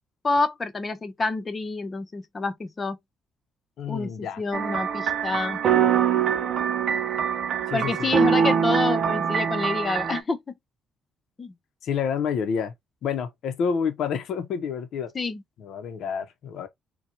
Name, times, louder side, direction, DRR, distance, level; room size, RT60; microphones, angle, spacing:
voice 1, 0.2-3.0 3.9-5.6 7.7-10.5 11.4-11.5 15.1-15.4, left 3 dB, 30° left, 0.8 m, -28 dB
voice 2, 3.8-4.4 7.7-8.1 11.8-12.7 13.0-15.1 15.6-16.7, left 6 dB, 75° left, 0.7 m, -28 dB
sound 1, 4.5-10.2, right 7 dB, 60° right, 0.6 m, -23 dB
4.2 x 2.3 x 2.6 m
cardioid pair, 90°, 0 cm